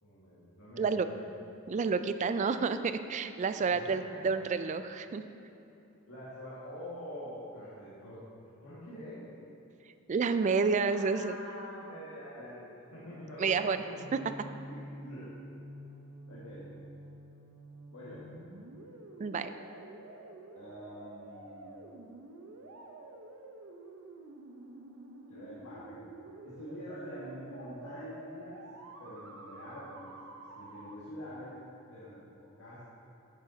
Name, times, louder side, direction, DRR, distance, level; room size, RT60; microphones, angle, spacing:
voice 1, 0.0-1.2 3.5-4.5 6.1-9.3 10.9-14.0 14.7-15.3 16.3-16.7 17.9-18.2 20.6-21.8 25.3-26.0 26.4-28.6 29.0-31.5 31.9-32.8, equal, 85° left, -11 dB, 1.9 m, -46 dB
voice 2, 1.7-5.2 10.1-11.4 13.4-13.8 19.2-19.5, right 5 dB, 35° right, 11 dB, 0.3 m, -29 dB
sound 1, 14.0-30.9, right 2 dB, 75° right, 0.8 m, -49 dB
10.5 x 9.0 x 2.8 m, 2.9 s
head